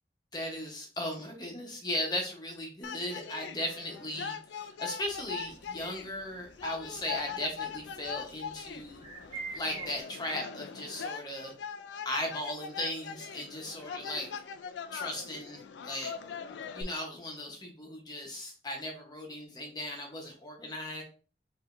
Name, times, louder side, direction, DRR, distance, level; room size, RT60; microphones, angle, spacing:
voice 1, 0.3-9.0 9.3-11.5 12.0-14.3 14.9-16.1 16.7-21.0, left 1 dB, 25° left, 1 dB, 0.9 m, -37 dB
sound 1, 2.8-16.8, left 6 dB, 85° left, 0.4 m, -41 dB
sound 2, 5.0-10.0, right 3 dB, 35° right, 1.2 m, -45 dB
4.8 x 2.7 x 2.5 m, 0.38 s
head